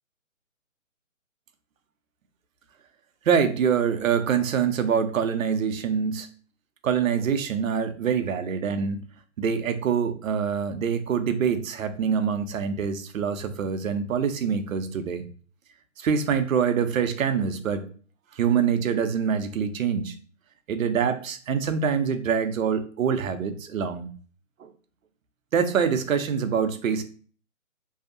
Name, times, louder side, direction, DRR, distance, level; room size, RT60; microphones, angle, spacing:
voice 1, 3.3-6.3 6.8-9.0 9.4-15.2 16.0-17.9 18.3-20.1 20.7-24.1 24.6-24.7 25.5-27.0, right 7 dB, 75° right, 9 dB, 0.6 m, -25 dB
2.6 x 2.0 x 2.5 m, 0.42 s
hypercardioid pair, 155°, 41 cm